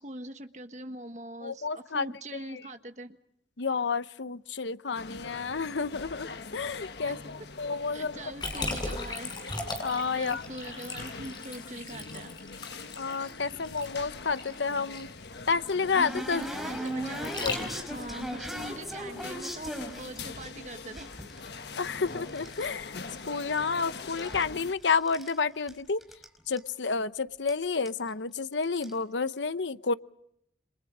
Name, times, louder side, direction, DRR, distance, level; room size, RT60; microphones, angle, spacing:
voice 1, 0.0-3.2 7.1-7.3 7.9-9.3 10.1-12.3 13.5-13.6 16.3-21.1, right 1 dB, 40° right, 8 dB, 1.5 m, -42 dB
voice 2, 1.4-2.1 2.5-2.6 3.6-6.3 6.5-8.2 8.6-8.7 9.8-10.4 13.0-15.1 15.5-16.5 17.4-17.6 21.8-23.0 23.3-26.0 26.5-29.9, left 5 dB, 85° left, 13 dB, 0.9 m, -30 dB
sound 1, 4.9-24.7, left 4 dB, 70° left, 1.2 m, -43 dB
Liquid, 8.4-18.0, left 2 dB, 25° left, 7.2 m, -38 dB
sound 2, 15.0-20.5 20.9-22.7 23.0-23.8 24.0-25.4 25.7-25.8 26.0-26.3 26.6-26.7 27.5-27.6 27.9-28.1 28.6-28.9, right 1 dB, ahead, 4.9 m, -38 dB
29.5 x 27.5 x 5.0 m, 0.73 s
head